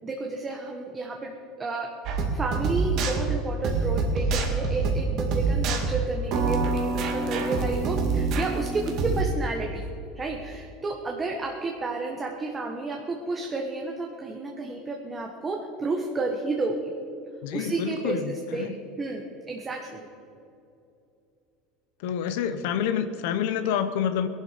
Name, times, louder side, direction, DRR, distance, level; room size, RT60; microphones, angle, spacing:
voice 1, 0.0-1.9 2.3-9.9 10.1-16.9 17.5-18.7 19.0-20.0, right 3 dB, 20° right, 1 dB, 1.3 m, -31 dB
sound 1, 2.1-9.2, right 4 dB, 50° right, 2.3 m, -26 dB
voice 2, 17.4-18.7 22.0-24.3, left 8 dB, 75° left, 10 dB, 1.0 m, -28 dB
19.0 x 11.5 x 5.2 m, 2.7 s
supercardioid pair, 145°, 0 cm